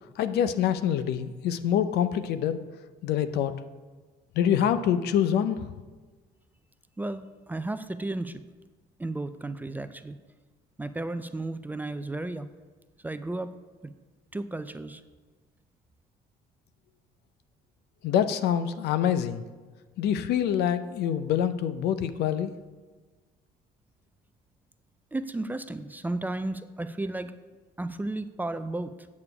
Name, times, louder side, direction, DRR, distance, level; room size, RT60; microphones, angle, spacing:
voice 1, 0.2-2.6 3.0-3.5 4.4-5.7 18.0-19.4 20.0-22.5, left 9 dB, 75° left, 11 dB, 0.6 m, -25 dB
voice 2, 7.0-8.4 9.0-10.2 10.8-12.5 13.0-13.5 14.3-15.0 25.1-27.3 27.8-28.9, right 2 dB, 10° right, 11 dB, 0.4 m, -33 dB
8.4 x 6.8 x 4.9 m, 1.3 s
cardioid pair, 110°, 17 cm